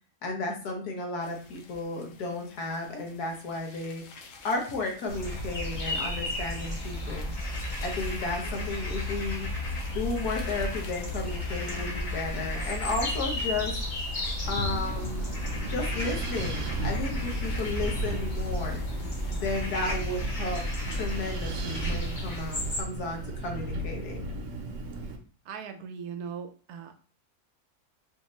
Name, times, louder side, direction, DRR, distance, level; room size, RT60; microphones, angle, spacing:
voice 1, 0.2-4.0 4.4-7.3 7.8-9.5 9.9-13.7 14.5-15.3 15.6-18.8 19.3-20.6 20.9-24.3, left 3 dB, 85° left, 1 dB, 1.6 m, -33 dB
sound 1, 1.2-19.4, left 3 dB, 65° left, 0.9 m, -49 dB
sound 2, 5.1-22.8, left 1 dB, 35° left, 0.9 m, -33 dB
Wind, 14.5-25.2, right 2 dB, 60° right, 1.0 m, -35 dB
voice 2, 25.4-27.0, right 6 dB, 85° right, 7 dB, 1.1 m, -39 dB
4.2 x 2.7 x 3.1 m, 0.40 s
omnidirectional pair, 1.6 m